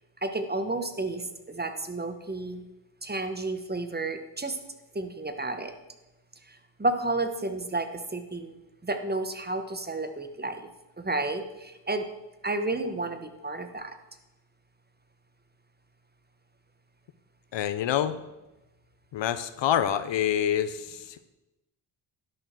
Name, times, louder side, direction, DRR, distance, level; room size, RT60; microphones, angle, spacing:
voice 1, 0.2-2.6 3.0-4.6 4.9-5.7 6.5-8.5 8.8-10.7 11.0-12.1 12.4-14.0, right 2 dB, 20° right, 8 dB, 1.4 m, -31 dB
voice 2, 17.5-18.2 19.1-21.2, left 10 dB, 60° left, 12 dB, 0.9 m, -27 dB
11.5 x 6.4 x 6.1 m, 1.0 s
supercardioid pair, 50°, 49 cm